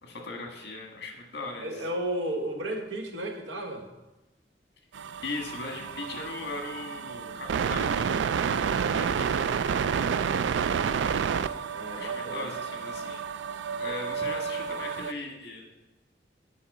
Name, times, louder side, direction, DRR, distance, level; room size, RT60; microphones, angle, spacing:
voice 1, 0.0-1.8 5.2-8.4 8.7-9.3 11.9-13.2 13.8-15.7, left 3 dB, 65° left, 2 dB, 1.6 m, -39 dB
voice 2, 1.6-3.9 11.7-12.5, right 1 dB, 90° right, 3 dB, 1.3 m, -34 dB
sound 1, 4.9-15.1, right 6 dB, 75° right, 0.3 m, -30 dB
8.5 x 4.8 x 6.6 m, 1.0 s
head